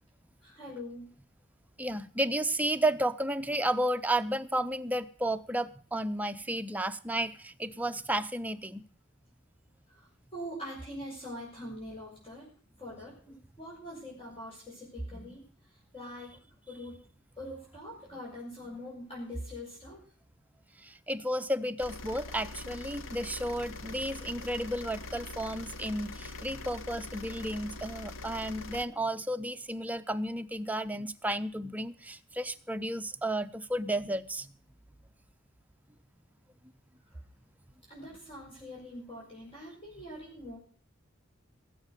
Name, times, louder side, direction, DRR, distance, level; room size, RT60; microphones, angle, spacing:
voice 1, 0.4-1.1 9.9-12.5 12.8-15.4 15.9-16.3 16.7-17.0 17.4-20.0 37.9-40.6, equal, 30° left, -5 dB, 5.8 m, -43 dB
voice 2, 1.8-8.8 15.1-15.2 20.8-34.5, right 1 dB, 10° right, 9 dB, 0.6 m, -32 dB
sound 1, 21.8-28.9, left 2 dB, 70° left, 1.1 m, -43 dB
18.5 x 8.2 x 6.6 m, 0.42 s
head